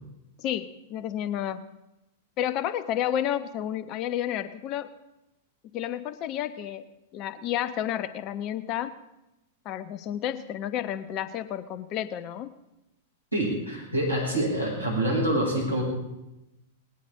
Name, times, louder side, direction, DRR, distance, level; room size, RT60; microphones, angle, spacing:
voice 1, 0.4-1.6 2.4-4.9 5.6-6.9 7.1-8.9 9.6-12.5, left 11 dB, 35° left, 13 dB, 0.9 m, -31 dB
voice 2, 13.3-15.8, right 1 dB, 90° right, -1 dB, 6.5 m, -26 dB
19.5 x 18.5 x 3.8 m, 0.94 s
figure-of-eight pair, 95°, 0 cm